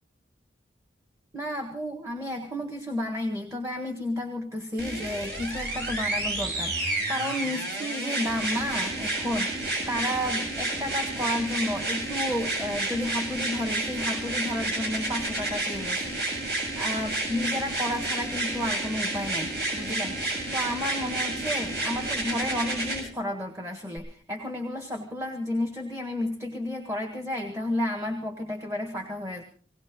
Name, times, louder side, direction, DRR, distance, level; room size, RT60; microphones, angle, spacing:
voice 1, 1.3-16.5 16.8-29.4, left 1 dB, 15° right, 4 dB, 1.7 m, -32 dB
sound 1, 4.8-23.0 24.0-24.1, right 2 dB, 60° right, 7.3 m, -30 dB
20.0 x 18.0 x 3.9 m, 0.42 s
head